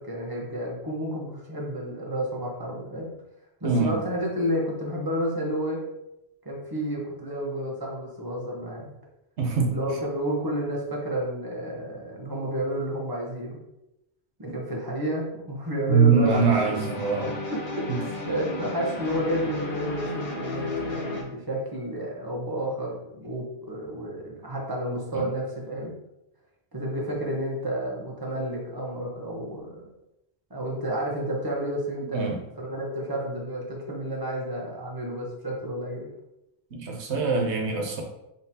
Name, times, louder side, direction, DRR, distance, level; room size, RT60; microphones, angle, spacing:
voice 1, 0.0-3.1 3.6-5.8 6.4-8.9 9.6-13.6 14.4-16.5 17.5-25.9 26.7-29.8 30.5-36.1, equal, 20° right, -3 dB, 1.0 m, -31 dB
voice 2, 3.6-3.9 9.4-9.7 15.9-17.3 25.1-25.2 32.1-32.4 36.7-38.0, right 5 dB, 80° right, 2 dB, 1.1 m, -23 dB
sound 1, 16.2-21.2, left 2 dB, 50° left, 1.2 m, -33 dB
4.2 x 3.9 x 2.8 m, 0.87 s
omnidirectional pair, 1.1 m